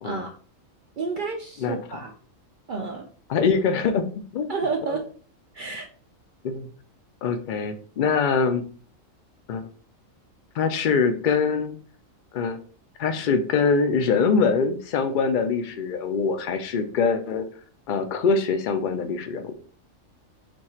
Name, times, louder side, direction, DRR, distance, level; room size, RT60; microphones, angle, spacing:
voice 1, 1.0-2.1 2.7-3.1 4.5-5.0 5.5-5.9, right 4 dB, 75° right, 2 dB, 0.4 m, -30 dB
voice 2, 1.6-2.0 3.3-4.0 4.3-4.5 4.9-5.0 6.4-6.7 7.2-8.6 9.5-9.7 10.5-11.8 12.3-12.6 13.0-17.5 17.9-19.5, left 5 dB, 60° left, 9 dB, 0.5 m, -23 dB
4.4 x 2.4 x 4.2 m, 0.43 s
omnidirectional pair, 1.4 m